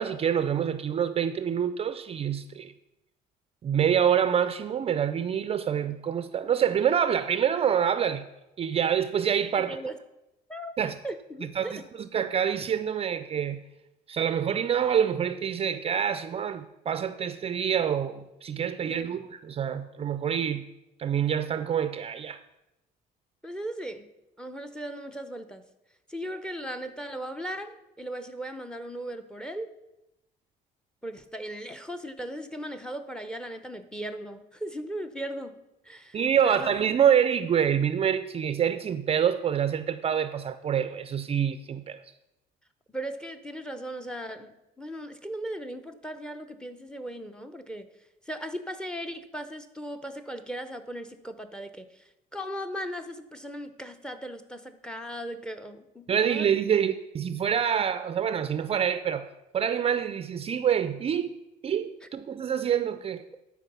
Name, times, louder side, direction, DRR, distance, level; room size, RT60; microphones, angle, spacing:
voice 1, 0.0-2.7 3.6-8.3 8.6-9.8 10.8-11.0 11.4-13.6 14.1-20.7 21.0-22.4 36.1-42.0 56.1-59.3 59.5-61.3 61.6-63.2, right 8 dB, 35° right, 0.4 m, -26 dB
voice 2, 9.6-10.0 10.5-11.8 18.9-19.1 23.4-24.1 24.4-25.6 26.1-29.7 31.0-35.6 35.8-36.7 42.9-47.9 48.3-56.5, right 1 dB, 5° left, 0.7 m, -37 dB
11.5 x 4.7 x 5.5 m
cardioid pair, 110°, 17 cm